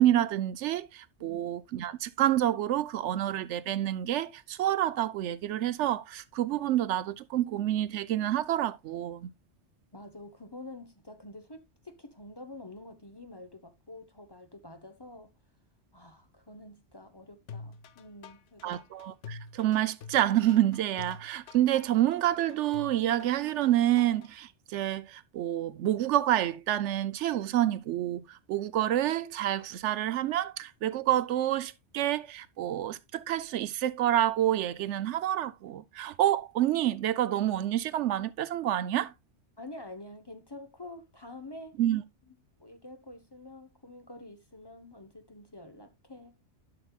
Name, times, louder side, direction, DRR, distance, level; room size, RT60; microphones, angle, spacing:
voice 1, 0.0-9.3 18.6-39.1 41.8-42.0, right 12 dB, 80° right, 0.9 m, -28 dB
voice 2, 9.9-15.3 15.9-18.9 39.6-41.8 42.3-46.3, left 2 dB, 25° left, 0.8 m, -47 dB
sound 1, 17.5-24.3, left 5 dB, 85° left, 1.0 m, -47 dB
11.5 x 5.9 x 2.3 m
omnidirectional pair, 1.2 m